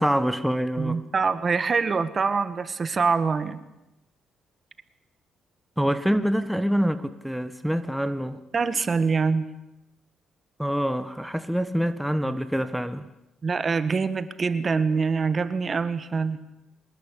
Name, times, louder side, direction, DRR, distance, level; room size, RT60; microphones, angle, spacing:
voice 1, 0.0-1.0 5.8-8.4 10.6-13.1, equal, ahead, 1.5 m, -25 dB
voice 2, 0.8-3.6 8.5-9.5 13.4-16.4, right 5 dB, 40° right, 1.7 m, -24 dB
24.5 x 20.5 x 8.6 m
cardioid pair, 90°, 0 cm